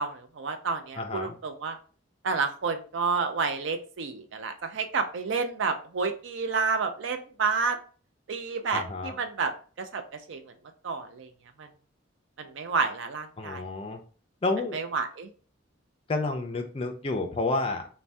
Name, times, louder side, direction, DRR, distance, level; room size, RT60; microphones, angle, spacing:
voice 1, 0.0-1.8 2.2-7.8 8.3-9.5 9.8-10.0 10.3-10.4 10.8-11.3 11.6-11.7 12.4-13.6 14.7-15.3, right 4 dB, 70° right, 7 dB, 0.4 m, -30 dB
voice 2, 0.9-1.4 8.7-9.1 13.4-14.0 14.4-14.8 16.1-17.9, left 3 dB, 30° left, 5 dB, 0.4 m, -30 dB
2.6 x 2.1 x 3.3 m, 0.39 s
head